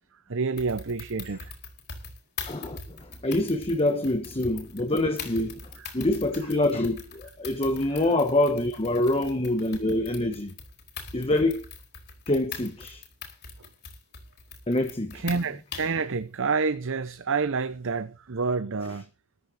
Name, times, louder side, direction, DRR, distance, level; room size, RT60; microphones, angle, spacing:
voice 1, 0.1-1.5 5.8-5.9 15.1-19.1, right 4 dB, 60° right, 0.7 m, -28 dB
sound 1, 0.6-16.0, left 5 dB, 50° left, 4.4 m, -42 dB
voice 2, 2.5-10.5 11.1-11.7 12.3-13.0 14.7-15.2, left 1 dB, 25° left, 1.3 m, -26 dB
14.0 x 12.0 x 4.1 m
head